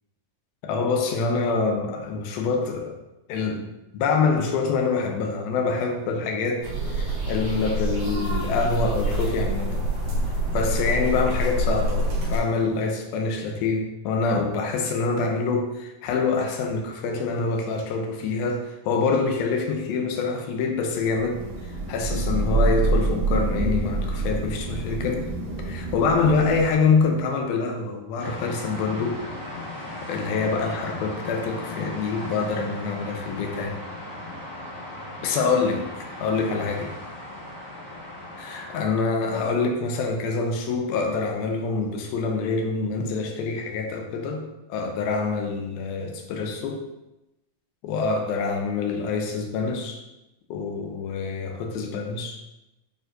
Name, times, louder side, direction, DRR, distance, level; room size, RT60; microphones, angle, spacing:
voice 1, 0.6-3.0 3.3-3.7 3.9-9.9 10.5-25.3 25.7-29.2 30.0-33.8 35.2-35.9 36.2-36.9 38.4-46.8 47.8-50.0 50.5-52.4, left 4 dB, 85° left, 3 dB, 2.6 m, -26 dB
sound 1, 6.6-12.4, right 1 dB, 60° right, 3.0 m, -26 dB
Thunder / Rain, 21.1-26.9, right 3 dB, 85° right, 1.3 m, -26 dB
sound 2, 28.2-38.8, left 1 dB, 70° left, 0.7 m, -37 dB
9.0 x 4.4 x 2.6 m, 0.96 s
omnidirectional pair, 4.2 m